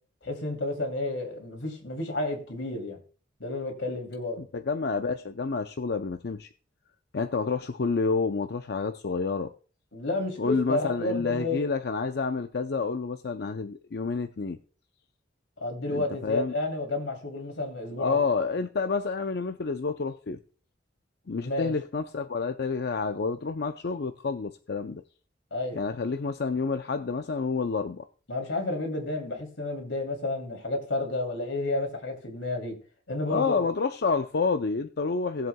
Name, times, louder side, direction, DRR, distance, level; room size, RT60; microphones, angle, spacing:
voice 1, 0.2-3.0 3.4-4.4 9.9-11.6 15.6-18.2 21.3-21.7 25.5-25.8 28.3-32.8 33.1-33.7, left 2 dB, 90° left, 2.8 m, -31 dB
voice 2, 4.4-6.5 7.1-9.5 10.4-14.6 15.9-16.5 18.0-20.4 21.3-25.0 25.7-28.0 33.3-35.5, left 4 dB, 60° left, 0.5 m, -29 dB
18.5 x 7.7 x 2.2 m
head